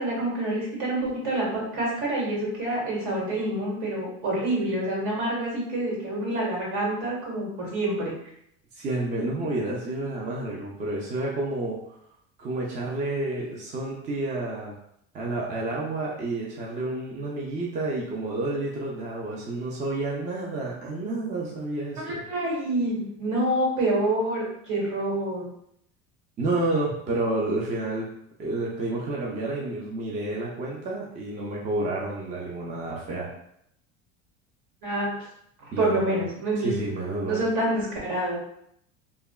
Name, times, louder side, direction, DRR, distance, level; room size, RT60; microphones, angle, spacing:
voice 1, 0.0-8.1 22.0-25.5 34.8-35.1 35.6-36.8 37.2-38.4, right 1 dB, 65° right, -3 dB, 1.5 m, -27 dB
voice 2, 8.7-12.0 12.4-14.7 15.1-22.2 26.4-28.1 28.4-33.3 35.7-36.2 36.6-37.4, right 2 dB, 25° right, -3 dB, 0.4 m, -30 dB
3.4 x 2.1 x 2.2 m, 0.72 s
cardioid pair, 145°, 32 cm